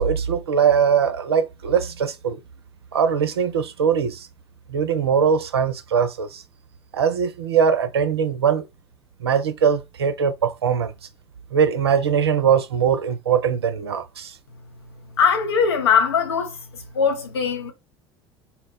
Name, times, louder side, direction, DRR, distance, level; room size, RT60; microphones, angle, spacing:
voice 1, 0.0-2.4 2.9-4.3 4.7-6.4 6.9-8.6 9.2-10.9 11.5-14.4, right 7 dB, 75° right, 0.4 m, -21 dB
voice 2, 15.2-16.5 16.9-17.7, left 6 dB, 75° left, 0.8 m, -20 dB
4.2 x 2.1 x 3.7 m
figure-of-eight pair, 65°, 13 cm